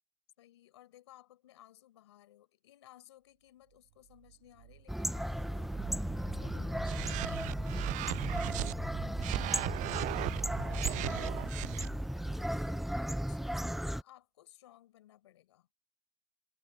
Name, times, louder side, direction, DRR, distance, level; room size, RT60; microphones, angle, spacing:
voice 1, 0.4-8.8 10.0-10.2 11.8-15.7, left 13 dB, 90° left, 5.5 m, -59 dB
sound 1, 3.9-13.7, right 19 dB, 85° right, 1.8 m, -49 dB
sound 2, 4.9-14.0, equal, ahead, 0.7 m, -35 dB
sound 3, 6.8-8.7 9.2-11.9, right 19 dB, 65° right, 0.4 m, -37 dB
voice 2, 8.2-8.8 9.8-11.7 13.4-13.6, left 4 dB, 30° left, 6.1 m, -61 dB
hypercardioid pair, 55°, 14 cm